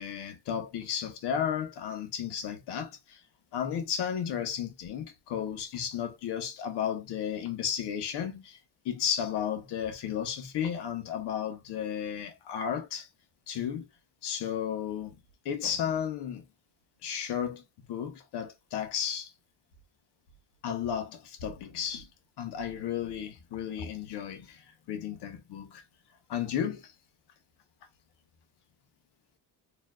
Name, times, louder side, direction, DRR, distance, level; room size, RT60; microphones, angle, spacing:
voice 1, 0.0-3.2 3.5-8.6 8.8-13.1 13.5-13.8 14.2-15.1 15.4-16.5 17.0-19.3 20.6-22.1 22.4-25.8 26.3-26.9, left 8 dB, 70° left, 1.3 m, -33 dB
4.5 x 3.2 x 2.4 m
cardioid pair, 150°, 42 cm